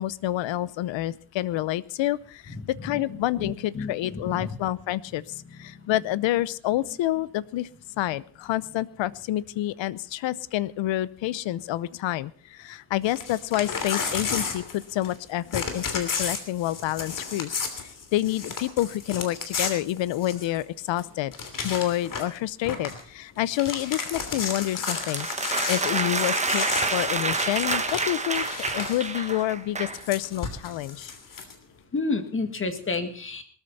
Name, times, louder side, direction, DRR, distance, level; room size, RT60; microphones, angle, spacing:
voice 1, 0.0-7.7 8.0-21.3 21.6-28.4 28.7-31.1, left 14 dB, 75° left, 19 dB, 0.8 m, -28 dB
voice 2, 3.4-4.5 31.9-33.4, left 3 dB, 25° left, 8 dB, 1.9 m, -30 dB
Crumpling crinkling / Tearing, 13.1-15.2 15.5-20.6 21.0-21.1 21.3-22.4 22.6-23.0 23.4-29.1 29.9-31.5, left 5 dB, 45° left, 3.0 m, -33 dB
sound 1, 24.9-30.0, right 4 dB, 15° right, 1.2 m, -28 dB
19.5 x 13.5 x 4.2 m, 0.44 s
cardioid pair, 150°, 46 cm